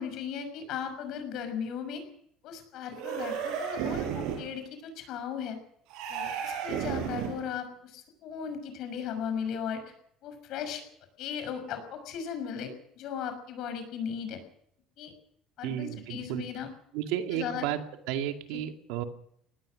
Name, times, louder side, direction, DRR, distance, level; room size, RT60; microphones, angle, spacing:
voice 1, 0.0-2.0 2.4-5.6 6.1-9.9 10.2-10.8 11.2-14.4 15.0-15.1 15.6-16.7 17.3-17.7 18.5-18.6, left 7 dB, 55° left, 8 dB, 6.1 m, -37 dB
sound 1, 2.9-4.5 5.9-7.5, right 8 dB, 70° right, 5.3 m, -33 dB
voice 2, 15.6-16.5 16.9-17.8 18.1-19.0, right 11 dB, 90° right, 5 dB, 2.2 m, -32 dB
23.0 x 19.0 x 6.5 m, 0.68 s
cardioid pair, 160°, 0 cm